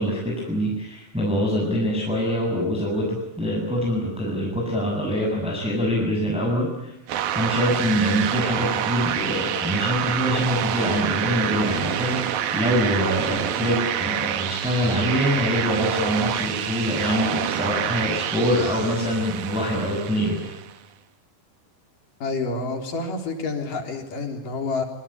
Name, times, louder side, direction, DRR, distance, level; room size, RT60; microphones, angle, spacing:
voice 1, 0.0-6.9 7.3-20.4, equal, ahead, -1 dB, 6.7 m, -24 dB
sound 1, 7.1-20.8, right 10 dB, 65° right, 3.1 m, -27 dB
voice 2, 22.2-24.8, left 3 dB, 50° left, 4 dB, 5.0 m, -28 dB
26.0 x 24.5 x 8.7 m, 0.86 s
omnidirectional pair, 5.0 m